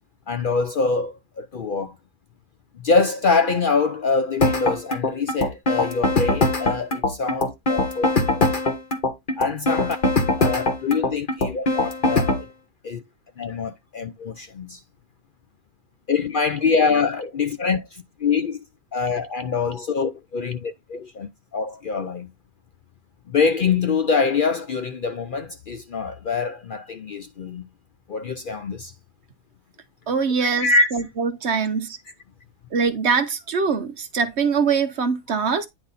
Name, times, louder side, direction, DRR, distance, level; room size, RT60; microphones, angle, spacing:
voice 1, 0.3-1.9 2.8-8.1 8.4-8.5 9.4-10.0 10.4-12.5 12.8-13.0 13.4-14.8 16.1-18.6 18.9-22.3 23.3-27.6 28.1-28.9 30.4-30.9, left 4 dB, 75° left, 0.4 m, -24 dB
sound 1, 4.4-12.4, left 2 dB, 35° left, 1.2 m, -21 dB
voice 2, 30.1-32.0 32.7-35.7, right 5 dB, 55° right, 0.9 m, -23 dB
9.6 x 3.9 x 4.1 m
omnidirectional pair, 1.6 m